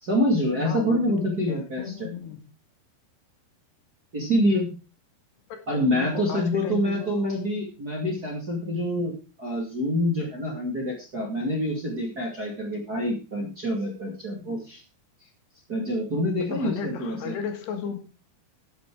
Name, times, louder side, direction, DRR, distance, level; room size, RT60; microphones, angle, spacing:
voice 1, 0.0-2.1 4.1-4.7 5.7-9.1 9.4-14.8 15.7-17.3, equal, 30° right, -1 dB, 2.1 m, -26 dB
voice 2, 0.7-1.0 1.5-2.4 5.5-7.3 14.5-14.6 16.4-18.0, left 7 dB, 75° left, 6 dB, 3.8 m, -35 dB
12.0 x 8.7 x 4.7 m, 0.34 s
omnidirectional pair, 4.9 m